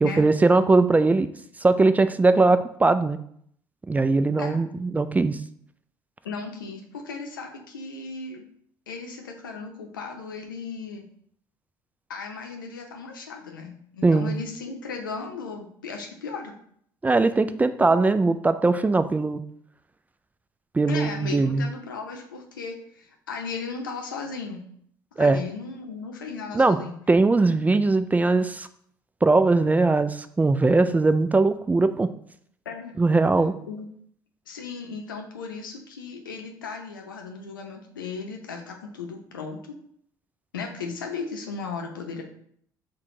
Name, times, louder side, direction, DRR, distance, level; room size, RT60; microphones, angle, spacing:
voice 1, 0.0-1.3 1.6-3.2 3.9-5.4 14.0-14.3 17.0-19.4 20.7-21.7 25.2-25.4 26.5-26.8 27.1-28.7 29.2-32.1 33.0-33.5, right 3 dB, 15° right, 11 dB, 0.3 m, -20 dB
voice 2, 6.2-8.4 8.9-11.1 12.1-16.5 20.9-24.6 25.1-27.0 32.6-33.0 33.7-33.9 34.5-39.8 40.5-42.2, left 4 dB, 85° left, 3 dB, 0.7 m, -36 dB
5.8 x 2.2 x 3.7 m, 0.66 s
figure-of-eight pair, 60°, 11 cm